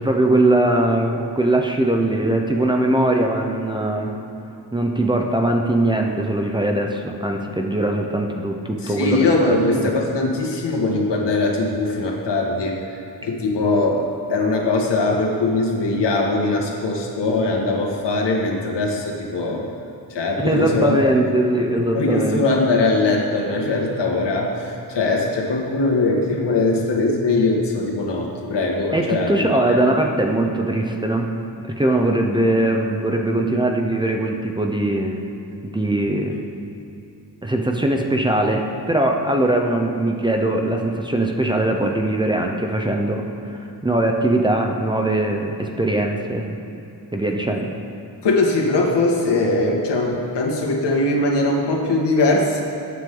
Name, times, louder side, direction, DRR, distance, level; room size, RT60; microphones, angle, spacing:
voice 1, 0.0-4.2 4.7-9.6 20.4-22.4 28.9-31.3 31.6-35.2 35.6-36.4 37.4-46.5 47.1-47.7, right 1 dB, 10° right, 2 dB, 0.7 m, -21 dB
voice 2, 8.8-12.8 13.2-14.0 14.3-19.7 20.1-21.1 21.9-29.4 29.7-29.8 48.2-52.6, left 2 dB, 85° left, -1 dB, 2.1 m, -21 dB
20.0 x 9.2 x 3.9 m, 2.8 s
wide cardioid pair, 180°, 41 cm